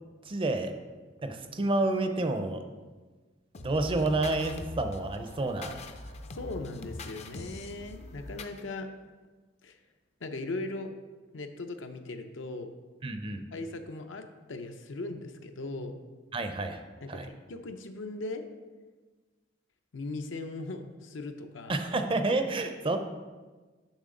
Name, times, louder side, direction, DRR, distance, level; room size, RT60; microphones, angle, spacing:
voice 1, 0.3-0.7 1.2-2.6 3.6-5.8 13.0-13.4 16.3-16.8 17.1-17.3 21.7-23.0, right 2 dB, 30° right, 7 dB, 0.5 m, -29 dB
sound 1, 3.5-8.6, left 2 dB, 35° left, 0.4 m, -42 dB
voice 2, 6.3-8.9 9.6-9.8 10.2-10.9 11.3-12.7 13.5-16.0 17.0-18.4 19.9-21.8, left 2 dB, 75° left, 6 dB, 0.6 m, -38 dB
7.2 x 5.9 x 3.8 m, 1.3 s
head